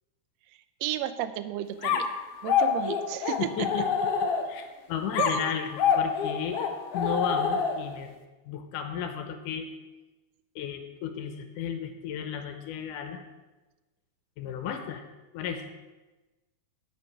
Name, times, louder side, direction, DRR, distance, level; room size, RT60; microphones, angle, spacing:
voice 1, 0.8-2.1 2.4-3.5 5.2-5.5, right 12 dB, 80° right, 10 dB, 1.5 m, -32 dB
sound 1, 1.8-4.7 5.1-8.0, left 6 dB, 65° left, 1.6 m, -27 dB
voice 2, 3.4-3.9 4.5-6.6 6.9-8.1 8.5-9.7 10.6-13.2 14.4-15.0 15.3-15.7, left 8 dB, 85° left, 7 dB, 2.4 m, -34 dB
9.1 x 8.9 x 6.0 m, 1.1 s
omnidirectional pair, 3.7 m